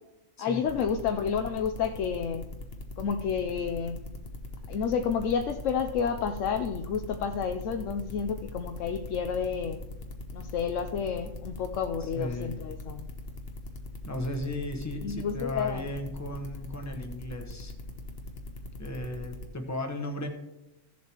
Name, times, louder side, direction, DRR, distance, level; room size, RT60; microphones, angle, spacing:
voice 1, 0.4-2.5 3.0-4.0 4.7-9.8 10.3-13.1 15.0-15.9, left 6 dB, 80° left, 6 dB, 1.0 m, -30 dB
sound 1, 0.7-19.5, left 2 dB, 50° left, 1.2 m, -40 dB
voice 2, 12.0-12.6 14.0-17.7 18.8-20.3, left 1 dB, 15° left, 4 dB, 1.0 m, -35 dB
15.5 x 7.3 x 3.0 m, 0.95 s
omnidirectional pair, 1.3 m